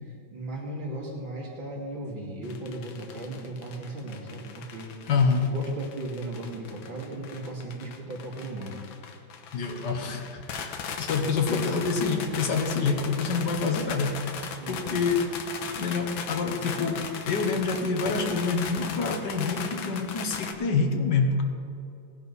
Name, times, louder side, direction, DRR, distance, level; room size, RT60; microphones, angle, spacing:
voice 1, 0.3-4.9 5.4-8.7 14.6-15.1, right 2 dB, 75° right, -3 dB, 3.2 m, -36 dB
sound 1, 2.4-20.5, left 6 dB, 80° left, 1.7 m, -38 dB
voice 2, 5.1-5.6 9.5-15.3 15.8-21.4, left 4 dB, 65° left, 4 dB, 1.6 m, -27 dB
17.5 x 10.5 x 4.1 m, 2.6 s
omnidirectional pair, 2.1 m